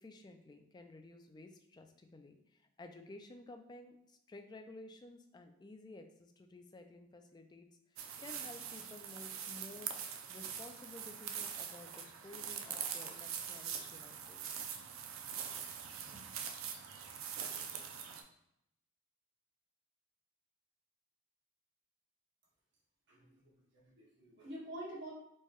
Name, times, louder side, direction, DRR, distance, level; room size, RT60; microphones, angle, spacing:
voice 1, 0.0-2.4 2.8-9.9 10.3-14.4, left 2 dB, 20° left, 6 dB, 0.3 m, -54 dB
sound 1, 8.0-18.2, right 8 dB, 75° right, 0.4 m, -43 dB
sound 2, 15.6-16.5, right 1 dB, 35° right, 0.9 m, -63 dB
voice 2, 23.1-25.1, right 1 dB, 55° right, -5 dB, 1.4 m, -48 dB
4.6 x 2.2 x 2.9 m, 0.79 s
head